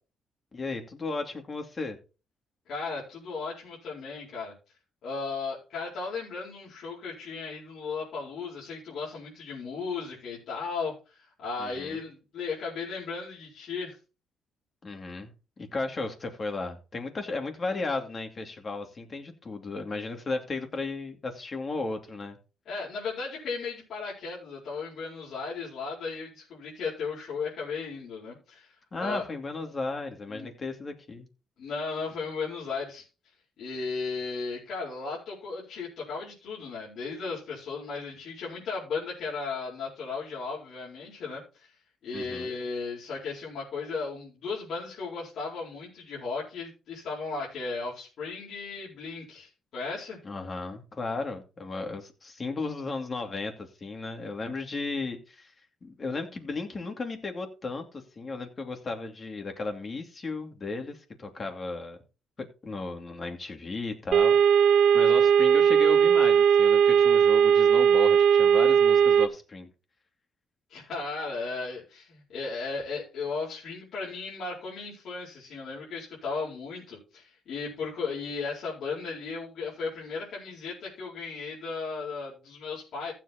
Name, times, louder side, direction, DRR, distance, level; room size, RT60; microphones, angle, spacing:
voice 1, 0.5-2.0 11.6-12.0 14.8-15.3 15.6-22.4 28.9-31.3 42.1-42.5 50.2-55.5 55.8-62.0 62.4-64.4 64.9-69.7, left 3 dB, 35° left, 4 dB, 2.6 m, -35 dB
voice 2, 2.7-4.5 5.0-14.0 22.6-28.7 29.0-29.3 30.3-30.5 31.6-33.1 33.6-41.7 42.0-50.2 70.7-83.1, left 4 dB, 70° left, -6 dB, 4.6 m, -35 dB
sound 1, 64.1-69.3, right 8 dB, 70° right, 0.9 m, -19 dB
15.5 x 7.6 x 3.0 m, 0.32 s
cardioid pair, 90°, 0 cm